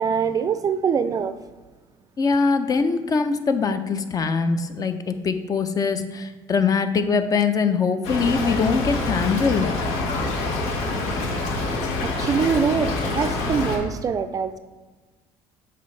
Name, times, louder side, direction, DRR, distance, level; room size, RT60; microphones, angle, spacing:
voice 1, 0.0-1.3 12.0-14.6, right 6 dB, 35° right, 11 dB, 0.4 m, -23 dB
voice 2, 2.2-9.7, left 5 dB, 35° left, 9 dB, 0.6 m, -22 dB
Stream / Trickle dribble, 8.0-13.8, left 2 dB, 80° left, 1.5 m, -26 dB
7.8 x 5.5 x 3.3 m, 1.3 s
cardioid pair, 110°, 11 cm